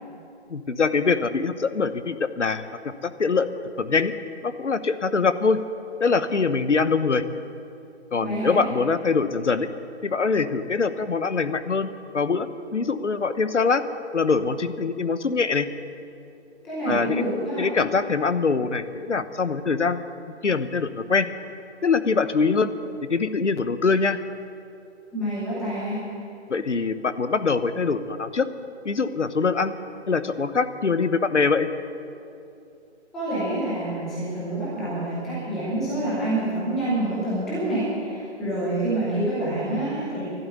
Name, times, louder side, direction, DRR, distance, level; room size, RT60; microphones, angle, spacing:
voice 1, 0.5-3.5 3.8-4.1 4.4-5.6 6.0-7.2 8.1-9.7 10.0-13.8 14.1-15.7 16.9-17.2 17.6-20.0 20.4-21.3 21.8-22.7 23.1-24.2 26.5-28.5 28.8-29.7 30.1-31.7, left 4 dB, 85° left, 12 dB, 1.1 m, -23 dB
voice 2, 8.2-8.6 16.6-17.7 25.1-26.0 33.1-40.2, right 1 dB, ahead, -10 dB, 0.6 m, -27 dB
12.0 x 11.5 x 9.4 m, 2.6 s
figure-of-eight pair, 155°, 35 cm